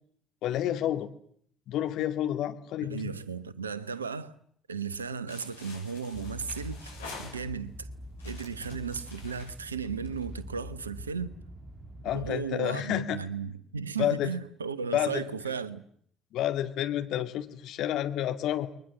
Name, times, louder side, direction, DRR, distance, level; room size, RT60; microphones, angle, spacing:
voice 1, 0.4-1.1 1.7-3.1 12.0-13.2 14.0-14.3 14.9-15.2 16.3-18.7, left 12 dB, 55° left, 2.3 m, -29 dB
voice 2, 2.9-4.4 4.7-6.9 7.2-7.9 8.2-11.3 12.1-15.8, right 5 dB, 80° right, 1.2 m, -35 dB
sound 1, 5.3-7.8 8.2-10.4, left 4 dB, 80° left, 7.6 m, -47 dB
sound 2, 6.1-12.3, equal, 20° right, 2.9 m, -44 dB
30.0 x 22.0 x 7.5 m
figure-of-eight pair, 50°, 0 cm